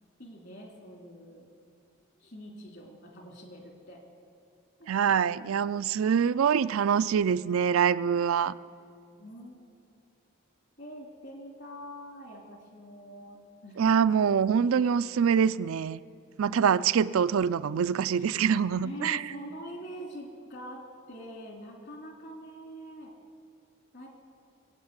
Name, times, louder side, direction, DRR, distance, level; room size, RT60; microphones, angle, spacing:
voice 1, 0.2-1.5 2.2-4.0 4.8-4.9 9.2-9.6 10.8-14.3 18.2-18.3 18.7-20.8 21.1-23.1 23.9-24.1, equal, 55° left, 0 dB, 2.9 m, -44 dB
voice 2, 4.9-8.6 13.8-16.0 16.4-19.2, right 7 dB, 90° right, 14 dB, 0.4 m, -25 dB
20.5 x 8.6 x 8.1 m, 2.6 s
head